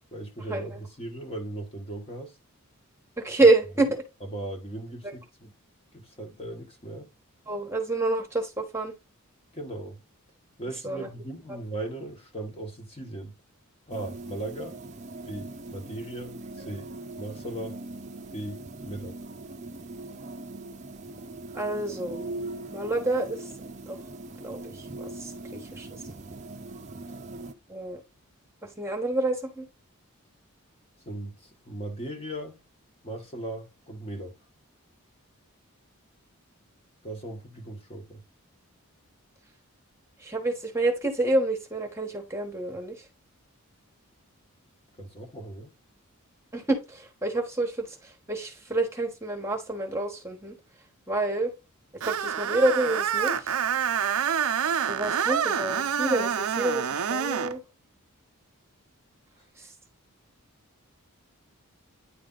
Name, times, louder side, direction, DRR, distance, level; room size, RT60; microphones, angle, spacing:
voice 1, 0.0-2.4 4.3-5.5 5.9-7.1 9.5-10.0 10.6-13.3 13.9-14.8 15.2-16.9 17.2-17.8 18.3-19.2 31.1-32.6 33.0-34.3 37.0-38.2 45.0-45.7, right 1 dB, 25° left, 1.3 m, -38 dB
voice 2, 3.2-4.0 5.0-5.1 7.5-8.9 10.8-11.1 21.5-22.2 22.7-23.5 23.9-24.0 24.4-25.9 27.7-28.0 28.6-29.7 40.2-43.0 46.5-50.5 51.1-51.5 52.0-53.5 54.9-57.6 59.6-59.7, right 2 dB, 10° right, 1.3 m, -28 dB
sound 1, 13.9-27.5, right 2 dB, 30° right, 0.6 m, -41 dB
Screech, 52.0-57.5, right 8 dB, 75° right, 0.6 m, -27 dB
9.8 x 3.3 x 3.9 m
head